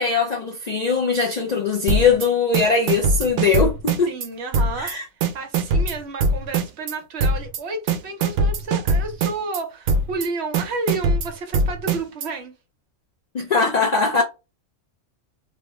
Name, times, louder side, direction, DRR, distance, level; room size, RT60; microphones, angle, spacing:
voice 1, 0.0-4.1 4.8-5.0 13.3-14.2, left 5 dB, 75° left, 0.3 m, -20 dB
sound 1, 1.9-2.3 2.5-4.3 4.5-4.9 5.2-6.9 7.2-7.6 7.9-9.6 9.9-10.3 10.5-12.3, right 3 dB, 90° right, 1.0 m, -21 dB
voice 2, 4.1-12.5, right 3 dB, 60° right, 0.9 m, -31 dB
2.8 x 2.0 x 3.0 m
omnidirectional pair, 1.4 m